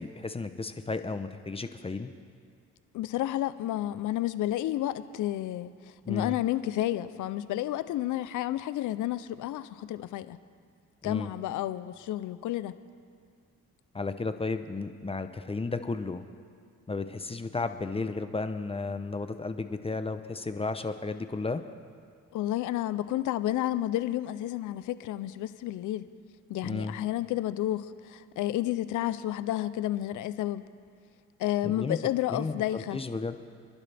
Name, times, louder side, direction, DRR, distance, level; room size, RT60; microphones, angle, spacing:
voice 1, 0.0-2.1 6.0-6.4 11.0-11.3 13.9-16.2 16.9-21.6 26.6-27.0 31.6-32.0 32.3-33.3, left 3 dB, 20° left, 9 dB, 0.8 m, -33 dB
voice 2, 2.9-5.7 6.1-10.4 11.0-12.7 22.3-26.1 26.5-30.6 31.4-33.0, left 13 dB, 80° left, 14 dB, 0.6 m, -31 dB
27.5 x 11.5 x 3.5 m, 2.2 s
cardioid pair, 90°, 30 cm